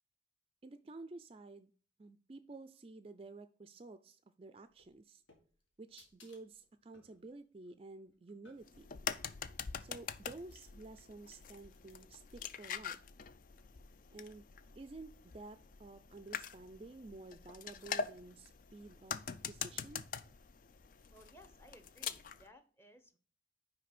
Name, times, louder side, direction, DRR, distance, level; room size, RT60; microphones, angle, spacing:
voice 1, 0.6-1.7 2.0-5.2 5.8-8.9 9.8-13.0 14.1-14.4 14.8-19.2 19.5-20.0, right 3 dB, 30° right, 11 dB, 0.4 m, -52 dB
sound 1, 4.7-9.0 9.8-12.8, left 3 dB, 85° left, 1.8 m, -66 dB
sound 2, 8.6-22.5, left 6 dB, 45° left, 0.4 m, -45 dB
voice 2, 21.1-23.2, left 1 dB, 10° left, 8 dB, 0.8 m, -60 dB
5.9 x 4.9 x 5.9 m, 0.41 s
head